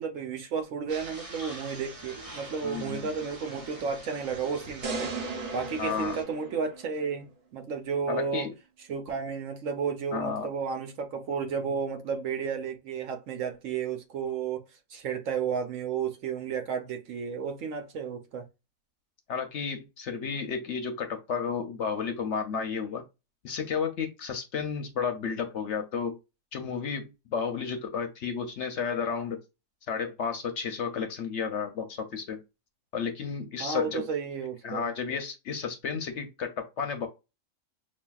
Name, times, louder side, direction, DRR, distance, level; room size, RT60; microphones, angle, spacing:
voice 1, 0.0-5.1 5.5-8.5 8.9-14.6 14.9-18.5 33.6-34.9, right 6 dB, 65° right, 1.0 m, -32 dB
sound 1, 0.9-6.2, right 1 dB, 25° right, 1.1 m, -44 dB
voice 2, 2.6-3.1 5.8-6.2 8.1-8.5 10.1-10.5 19.3-23.0 23.4-26.2 26.5-29.4 29.9-32.4 32.9-34.1 34.6-37.1, left 6 dB, 60° left, 0.8 m, -32 dB
sound 2, 4.8-7.1, right 3 dB, 45° right, 0.7 m, -36 dB
5.9 x 2.3 x 2.3 m
omnidirectional pair, 1.5 m